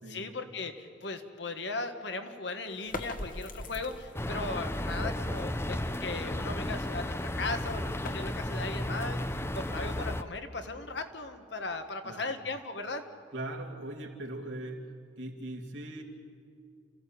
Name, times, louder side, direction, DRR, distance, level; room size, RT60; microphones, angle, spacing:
voice 1, 0.1-13.0, left 3 dB, 65° left, 7 dB, 1.6 m, -37 dB
sound 1, 2.7-4.3 7.0-10.0, left 2 dB, 45° left, 1.5 m, -43 dB
sound 2, 4.1-10.2, left 1 dB, 15° left, 0.6 m, -34 dB
voice 2, 13.3-16.0, right 1 dB, 85° right, 1 dB, 2.8 m, -40 dB
29.5 x 15.0 x 8.7 m, 2.3 s
head